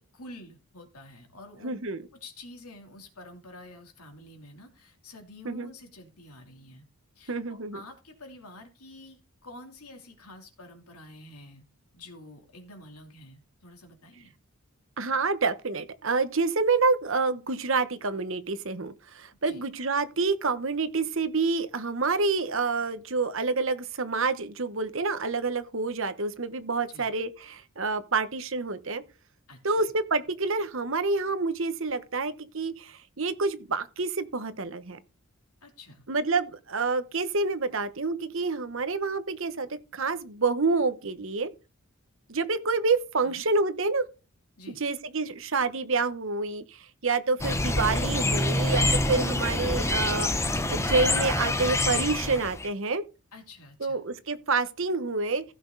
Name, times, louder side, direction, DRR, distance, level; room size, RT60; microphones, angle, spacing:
voice 1, 0.0-1.8 2.2-6.9 7.2-11.6 11.9-14.3 19.5-19.6 26.9-27.1 29.5-29.8 35.6-36.1 43.2-43.4 44.6-44.8 53.3-54.0, left 1 dB, 85° left, 2.9 m, -48 dB
voice 2, 1.6-2.1 5.4-5.7 7.3-7.8 15.0-29.0 29.6-35.0 36.1-41.5 42.3-44.0 44.8-53.0 53.8-55.4, right 4 dB, 60° right, 1.0 m, -28 dB
sound 1, 47.4-52.7, left 2 dB, 10° left, 0.7 m, -26 dB
15.5 x 6.1 x 3.9 m
head